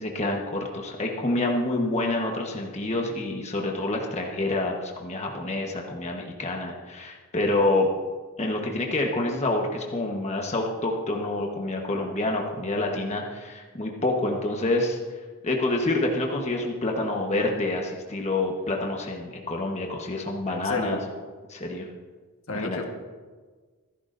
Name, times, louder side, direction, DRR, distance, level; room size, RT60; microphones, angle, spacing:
voice 1, 0.0-7.9 8.4-15.0 15.4-21.0 21.5-21.9 22.5-22.8, left 2 dB, 30° left, 1 dB, 1.2 m, -27 dB
voice 2, 20.5-21.0 22.5-22.8, left 2 dB, 65° left, 3 dB, 1.5 m, -31 dB
26.0 x 11.0 x 2.6 m, 1.4 s
head